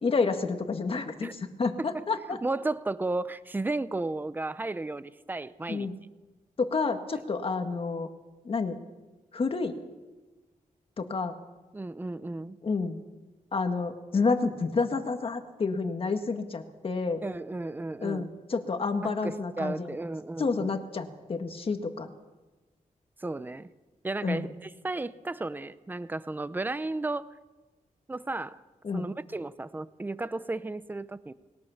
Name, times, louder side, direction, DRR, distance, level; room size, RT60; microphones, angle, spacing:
voice 1, 0.0-2.4 5.7-5.9 6.6-8.1 8.5-8.8 9.3-9.8 11.0-11.3 12.6-13.0 13.5-17.2 18.0-20.0 20.4-22.1 24.2-24.5 28.8-29.1, left 4 dB, 45° left, 6 dB, 1.7 m, -29 dB
voice 2, 2.4-5.9 11.7-12.6 17.2-18.3 19.0-20.7 23.2-23.7 24.0-27.3 28.1-28.6 28.9-31.3, right 2 dB, 15° right, 15 dB, 0.6 m, -34 dB
21.5 x 17.5 x 7.2 m, 1.2 s
wide cardioid pair, 155°, 13 cm